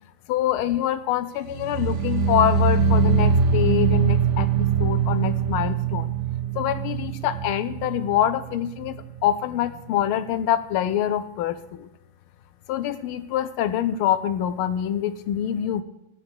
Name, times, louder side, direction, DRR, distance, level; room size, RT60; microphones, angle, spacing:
voice 1, 0.3-4.5 4.8-6.1 6.5-11.9 12.7-15.8, left 10 dB, 80° left, 13 dB, 1.4 m, -25 dB
sound 1, 1.5-8.6 8.9-9.3 9.7-9.8, right 6 dB, 70° right, 0.6 m, -22 dB
14.0 x 8.9 x 4.8 m, 0.88 s
omnidirectional pair, 2.4 m